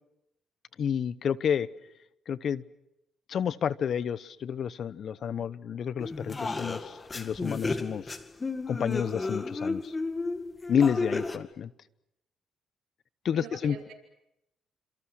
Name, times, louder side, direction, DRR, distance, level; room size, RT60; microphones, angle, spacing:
voice 1, 0.8-1.7 2.3-2.6 3.3-8.2 8.7-9.9 10.7-11.7 13.2-13.8, left 8 dB, 60° left, 18 dB, 1.0 m, -30 dB
voice 2, 5.2-5.5 13.3-13.9, right 8 dB, 80° right, 3 dB, 5.8 m, -45 dB
sound 1, 6.0-11.4, left 3 dB, 25° left, 2.0 m, -33 dB
29.0 x 27.0 x 6.3 m, 0.84 s
cardioid pair, 90°, 0 cm